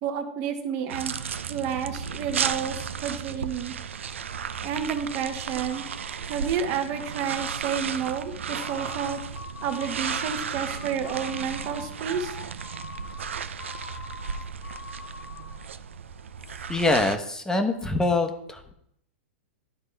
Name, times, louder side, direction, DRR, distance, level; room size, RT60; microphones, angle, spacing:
voice 1, 0.0-1.2 1.5-3.7 4.6-5.8 6.3-9.2 9.6-12.4, right 7 dB, 45° right, 6 dB, 1.2 m, -30 dB
sound 1, 0.9-17.2, right 7 dB, 85° right, 0.4 m, -34 dB
sound 2, 8.4-15.7, left 5 dB, 75° left, 0.7 m, -43 dB
voice 2, 16.7-18.7, left 2 dB, 10° left, 6 dB, 0.9 m, -24 dB
12.0 x 4.3 x 3.3 m, 0.74 s
hypercardioid pair, 120°, 7 cm